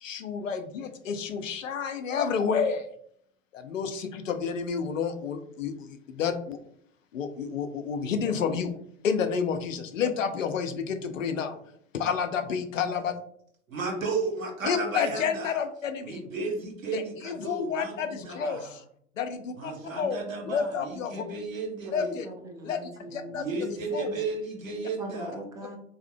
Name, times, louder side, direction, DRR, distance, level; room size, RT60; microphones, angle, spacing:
voice 1, 0.0-2.9 3.5-6.6 7.1-8.7 9.0-11.6 11.9-13.1 14.6-16.2 16.9-18.8 19.2-21.2 21.9-22.3 22.6-22.8 23.1-23.5 23.9-24.1, left 6 dB, 75° left, 8 dB, 0.5 m, -30 dB
voice 2, 13.7-15.5 16.0-18.7 19.6-22.2 23.3-25.4, right 3 dB, 80° right, 1 dB, 1.0 m, -34 dB
voice 3, 21.8-23.8 24.1-24.2 25.0-25.8, right 2 dB, 10° right, 2 dB, 0.4 m, -42 dB
3.6 x 2.7 x 2.2 m, 0.67 s
figure-of-eight pair, 85°, 39 cm